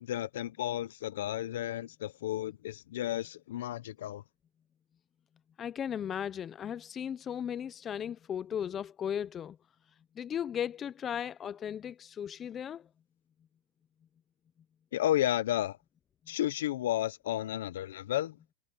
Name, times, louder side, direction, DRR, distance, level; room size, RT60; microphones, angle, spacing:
voice 1, 0.0-4.2 14.9-15.8 16.3-18.3, left 13 dB, 80° left, 0.7 m, -32 dB
voice 2, 5.6-9.6 10.2-12.9, left 9 dB, 25° left, 0.5 m, -36 dB
supercardioid pair, 140°, 0 cm